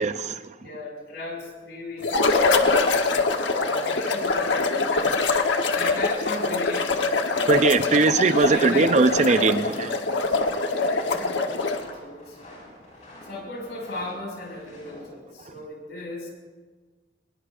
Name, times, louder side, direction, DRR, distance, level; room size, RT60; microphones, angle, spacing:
voice 1, 0.0-0.5 7.5-10.0, right 4 dB, 40° right, 0.6 m, -20 dB
voice 2, 0.6-5.1 5.7-6.9 8.5-9.0 10.6-12.4 13.2-16.3, left 2 dB, 70° left, 6.1 m, -36 dB
sound 1, 2.0-11.9, left 3 dB, 90° left, 1.1 m, -24 dB
sound 2, 2.9-15.1, left 1 dB, 45° left, 6.1 m, -45 dB
22.0 x 21.0 x 2.5 m
head